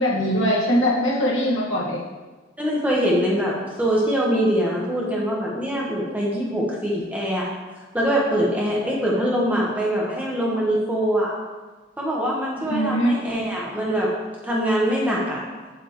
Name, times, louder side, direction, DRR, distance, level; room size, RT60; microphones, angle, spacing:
voice 1, 0.0-2.0 12.7-13.2, equal, 75° left, -4 dB, 1.8 m, -21 dB
voice 2, 2.6-7.5 7.9-11.3 12.0-14.1 14.4-15.4, equal, 10° right, -5 dB, 1.4 m, -23 dB
8.3 x 7.4 x 3.1 m, 1.3 s
head